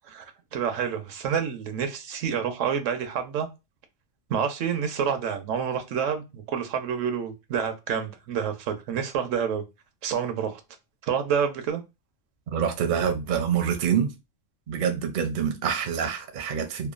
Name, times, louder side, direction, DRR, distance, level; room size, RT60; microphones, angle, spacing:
voice 1, 0.1-3.5 4.3-9.6 10.0-10.6 11.0-11.8, right 7 dB, 80° right, 1.0 m, -28 dB
voice 2, 12.5-14.1 14.7-16.9, right 7 dB, 55° right, 0.6 m, -26 dB
2.9 x 2.2 x 2.4 m
omnidirectional pair, 1.3 m